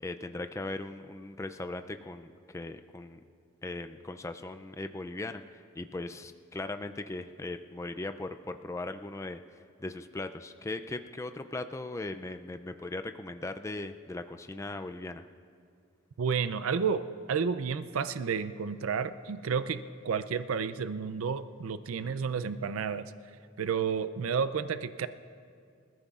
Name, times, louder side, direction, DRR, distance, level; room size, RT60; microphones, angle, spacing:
voice 1, 0.0-3.2 3.6-15.2 22.0-22.2, left 2 dB, 15° left, 8 dB, 0.3 m, -39 dB
voice 2, 16.2-23.1 23.6-25.1, right 6 dB, 85° right, 12 dB, 0.5 m, -31 dB
26.0 x 14.0 x 2.4 m, 2.3 s
head